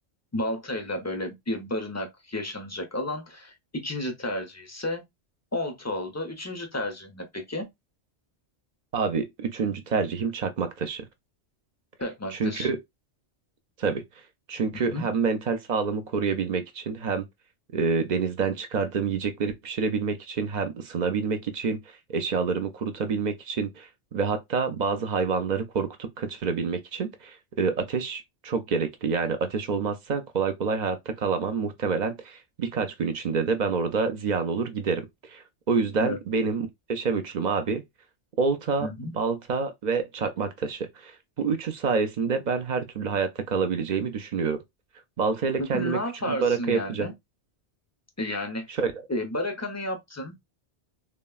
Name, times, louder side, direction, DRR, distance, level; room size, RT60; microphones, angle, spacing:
voice 1, 0.3-5.0 5.5-7.7 12.0-12.7 14.9-15.1 36.0-36.2 38.8-39.1 45.6-47.1 48.2-48.8 49.1-50.4, left 1 dB, 25° left, 0.4 m, -32 dB
voice 2, 8.9-11.0 12.3-12.8 13.8-14.0 14.5-17.3 17.7-21.8 22.1-37.8 38.4-38.9 39.2-41.1 41.4-44.6 45.2-46.0 46.3-47.1 48.8-48.9, right 5 dB, 55° right, 0.5 m, -27 dB
3.5 x 2.1 x 2.3 m
omnidirectional pair, 1.2 m